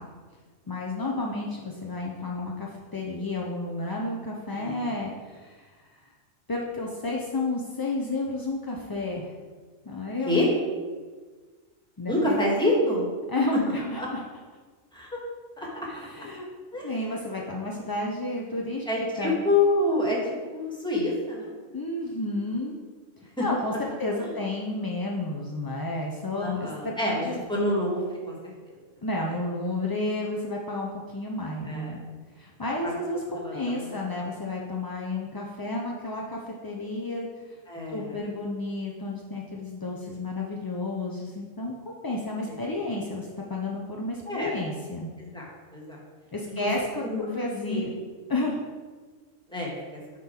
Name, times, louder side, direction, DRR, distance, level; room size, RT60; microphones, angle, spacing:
voice 1, 0.7-5.7 6.5-9.3 9.9-10.5 12.0-12.4 13.3-14.2 15.9-16.5 16.8-18.8 19.2-19.4 21.7-22.8 23.4-23.7 24.0-27.4 29.0-32.0 32.4-37.3 37.9-45.1 46.3-47.0 47.3-47.9 48.3-48.6, left 2 dB, 35° left, -2 dB, 0.3 m, -31 dB
voice 2, 4.5-4.9 10.2-10.5 12.1-13.1 13.5-13.6 14.0-14.1 14.9-15.1 15.6-15.7 16.2-16.3 16.7-16.9 18.8-20.2 20.5-21.5 23.4-23.5 24.2-24.3 26.4-28.4 31.6-31.9 32.8-32.9 33.3-34.0 37.7-38.1 42.5-42.6 44.3-44.5 45.2-46.0 46.5-46.7 47.0-47.3 47.7-48.0 49.5-50.0, left 2 dB, 5° left, -4 dB, 1.5 m, -27 dB
8.7 x 3.8 x 4.4 m, 1.4 s
omnidirectional pair, 1.3 m